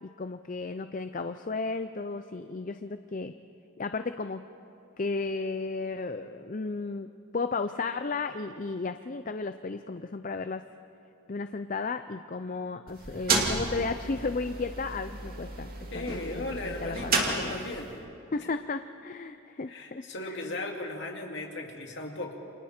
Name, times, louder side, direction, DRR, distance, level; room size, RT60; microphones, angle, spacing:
voice 1, 0.0-3.3 3.8-4.4 5.0-10.6 11.3-17.6 18.3-20.4, left 3 dB, 40° left, 9 dB, 0.5 m, -34 dB
sound 1, 12.9-18.0, right 3 dB, 45° right, 2.5 m, -32 dB
voice 2, 15.9-17.9 18.4-18.5 19.7-22.4, left 2 dB, 55° left, 1 dB, 2.5 m, -37 dB
29.5 x 27.0 x 4.4 m, 2.7 s
head